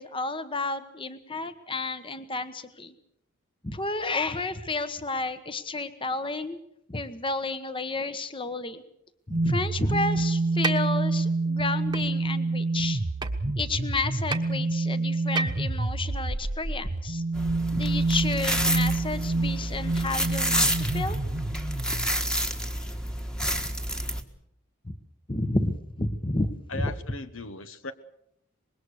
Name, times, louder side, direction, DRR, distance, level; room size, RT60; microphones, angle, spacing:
voice 1, 0.0-2.9 3.6-6.6 6.9-8.8 9.3-13.0 13.4-17.2 17.7-21.2 23.5-23.6 24.8-24.9 25.3-26.5 26.8-26.9, left 3 dB, 25° left, 11 dB, 1.2 m, -31 dB
sound 1, 9.3-22.1, right 3 dB, 40° right, 0.8 m, -28 dB
sound 2, 10.6-10.7 11.9-12.0 13.2-13.3 14.3-14.4 15.4-15.7, right 4 dB, 20° right, 1.3 m, -28 dB
sound 3, 17.3-24.2, equal, 5° left, 1.5 m, -29 dB
voice 2, 26.7-27.9, left 2 dB, 65° left, 11 dB, 1.2 m, -37 dB
25.0 x 21.0 x 6.6 m, 0.74 s
head